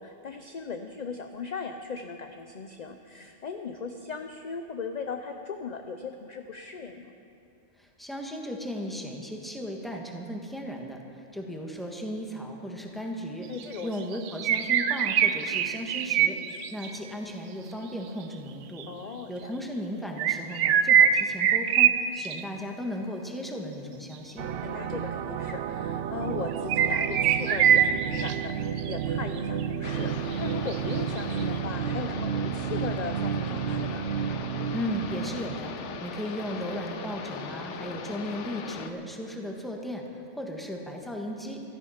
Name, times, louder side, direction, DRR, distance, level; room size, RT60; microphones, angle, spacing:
voice 1, 0.0-7.1 13.5-13.9 18.9-19.5 24.6-34.1, left 5 dB, 45° left, 6 dB, 0.6 m, -38 dB
voice 2, 7.8-13.5 13.8-16.4 16.7-18.9 19.3-24.5 34.7-35.7 36.0-41.6, equal, ahead, 1 dB, 1.4 m, -36 dB
sound 1, 13.6-13.7 14.1-17.0 18.8-18.9 20.2-22.4 26.5-28.3 28.8-28.9 29.4-29.5 29.6-29.7 30.0-30.1 30.7-31.4, right 9 dB, 90° right, 0.9 m, -23 dB
sound 2, 24.4-36.1, right 8 dB, 60° right, 0.7 m, -32 dB
sound 3, 29.8-38.9, left 6 dB, 80° left, 1.1 m, -39 dB
15.0 x 13.5 x 5.7 m, 2.7 s
omnidirectional pair, 1.2 m